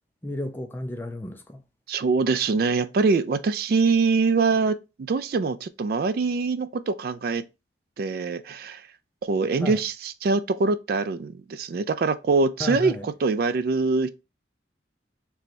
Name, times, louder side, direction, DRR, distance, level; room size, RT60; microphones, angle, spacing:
voice 1, 0.2-1.6 9.6-9.8 12.6-13.1, left 1 dB, 10° left, 0.5 m, -33 dB
voice 2, 1.9-7.4 8.0-8.8 9.2-14.1, right 4 dB, 55° right, 0.3 m, -24 dB
3.4 x 3.1 x 4.1 m
head